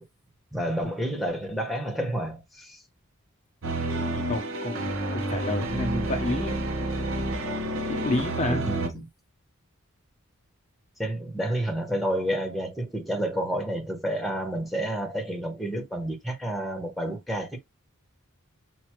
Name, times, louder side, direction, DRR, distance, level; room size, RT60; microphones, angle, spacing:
voice 1, 0.5-2.8 8.4-9.1 11.0-17.6, right 1 dB, ahead, 1.2 m, -30 dB
sound 1, 3.6-8.9, right 1 dB, 65° right, 1.1 m, -29 dB
voice 2, 4.3-6.7 7.8-8.8, left 1 dB, 35° left, 0.8 m, -30 dB
6.0 x 2.8 x 3.0 m
head